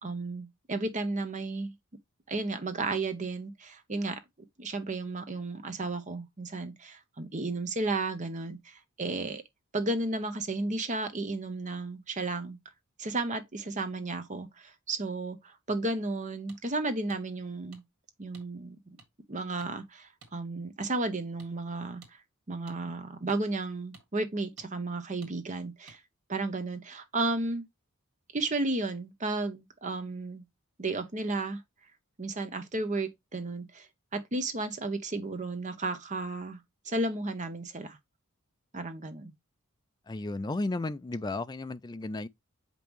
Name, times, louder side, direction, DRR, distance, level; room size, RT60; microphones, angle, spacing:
voice 1, 0.0-1.7 2.3-4.2 4.6-9.4 9.7-12.6 13.0-17.8 18.2-19.0 19.3-22.2 22.5-26.0 26.3-27.6 28.3-30.4 30.8-31.6 32.2-36.6 36.8-38.0 38.7-39.3, right 2 dB, 35° right, 0.9 m, -33 dB
sound 1, 16.5-16.6 17.1-17.2 17.7-17.8 18.3-18.5 19.0-19.1 19.6-19.7 20.2-20.3 20.8-20.9 21.4-21.5 22.0-22.1 22.7-22.8 23.3-23.4 23.9-24.1 24.6-24.7 25.2-25.3 25.9-26.0, right 4 dB, 80° right, 1.9 m, -54 dB
voice 2, 40.1-42.3, left 2 dB, 20° left, 0.3 m, -34 dB
7.6 x 5.3 x 3.0 m
head